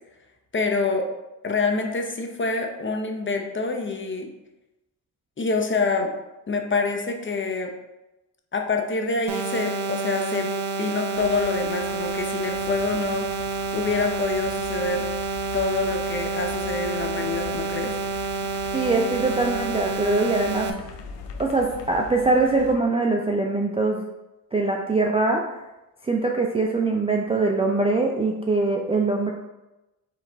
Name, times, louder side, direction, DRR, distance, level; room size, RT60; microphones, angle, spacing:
voice 1, 0.5-1.1 1.4-4.3 5.4-6.1 6.5-7.7 8.5-10.5 10.8-13.3 13.7-15.1 15.5-18.0, left 4 dB, 25° left, 3 dB, 0.7 m, -26 dB
sound 1, 9.3-20.7, right 4 dB, 65° right, 0.7 m, -29 dB
sound 2, 11.1-22.7, left 5 dB, 70° left, 0.7 m, -42 dB
voice 2, 18.7-20.7 21.4-24.0 24.5-25.4 26.0-29.3, right 3 dB, 15° right, 0 dB, 0.4 m, -22 dB
4.5 x 3.1 x 3.4 m, 1.0 s
supercardioid pair, 55°, 45 cm